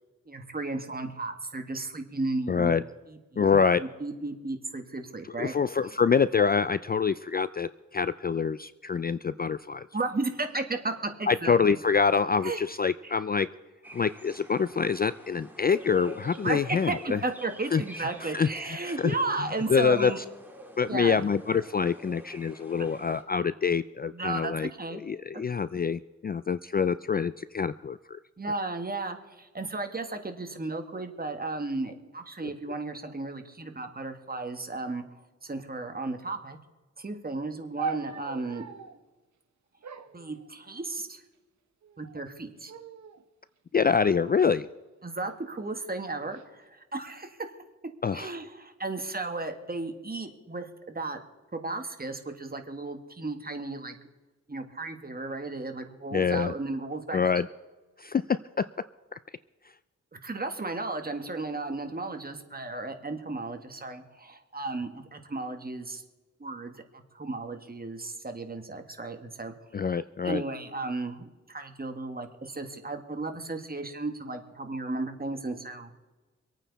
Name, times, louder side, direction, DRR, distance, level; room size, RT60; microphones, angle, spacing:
voice 1, 0.3-2.8 3.1-5.5 9.9-11.6 12.4-12.6 13.0-13.1 16.4-20.2 20.8-21.2 24.1-25.0 28.4-35.0 35.4-36.6 37.0-38.7 40.1-41.2 42.0-42.7 45.0-47.4 48.1-51.2 51.5-54.0 54.5-57.2 60.2-66.0 66.4-66.8 67.1-69.5 69.9-76.0, right 3 dB, 30° right, 5 dB, 1.9 m, -34 dB
voice 2, 2.5-2.8 3.4-3.8 5.4-9.9 11.3-13.5 13.9-17.2 17.7-17.8 18.3-19.1 19.7-20.1 20.8-28.2 43.7-44.7 48.0-48.3 56.1-56.5 57.1-57.5 58.0-58.2 69.7-70.4, left 6 dB, 30° left, 15 dB, 0.4 m, -26 dB
sound 1, 13.8-23.2, right 1 dB, 5° right, 2.4 m, -48 dB
sound 2, 37.8-39.0 39.8-41.0 41.8-42.3 42.7-43.2 43.9-45.2 46.0-46.4, right 5 dB, 65° right, 1.0 m, -41 dB
25.0 x 9.1 x 4.2 m, 1.2 s
cardioid pair, 75°, 30 cm